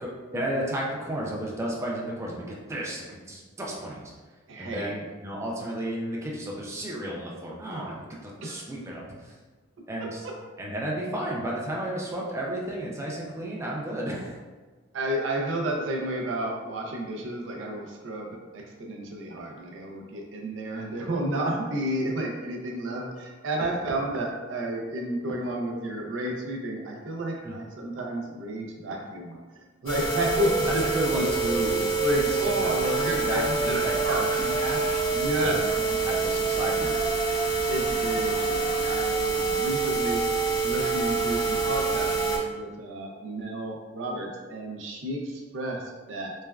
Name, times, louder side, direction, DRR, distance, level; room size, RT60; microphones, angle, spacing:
voice 1, 0.0-4.1 4.6-9.3 9.9-10.2 10.6-14.4 27.4-27.6 30.7-31.9 32.1-35.1 35.4-37.0 39.3-39.7, right 1 dB, 15° right, -3 dB, 0.4 m, -33 dB
voice 2, 4.5-5.0 8.4-8.6 14.9-29.4 29.8-30.8 31.1-31.3 32.0-34.4 35.1-35.6 37.7-40.2 40.6-46.3, right 1 dB, 75° right, 0 dB, 0.5 m, -31 dB
sound 1, 29.9-42.4, right 4 dB, 75° left, 0.8 m, -26 dB
3.2 x 2.2 x 2.2 m, 1.3 s
head